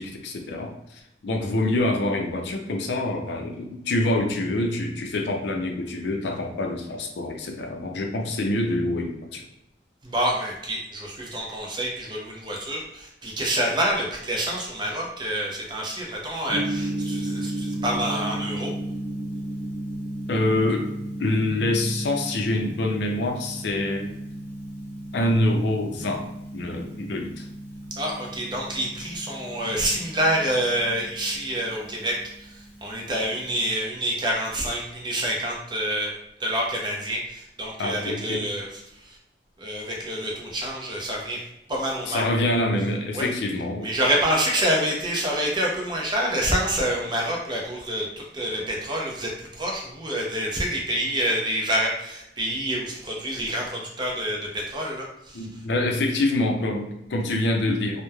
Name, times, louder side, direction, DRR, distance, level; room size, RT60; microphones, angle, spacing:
voice 1, 0.0-9.4 20.3-20.9 21.2-24.1 25.1-26.3 26.5-27.5 37.8-38.5 42.1-43.9 55.3-58.0, left 1 dB, 75° left, 3 dB, 0.4 m, -26 dB
voice 2, 10.0-18.7 28.0-32.2 32.8-36.1 36.4-38.7 39.6-41.4 41.7-42.3 43.1-43.3 43.8-55.4, right 1 dB, 25° right, -2 dB, 0.5 m, -27 dB
Gong, 16.5-33.7, right 1 dB, 5° right, 1.1 m, -34 dB
3.0 x 2.0 x 2.3 m, 0.83 s
head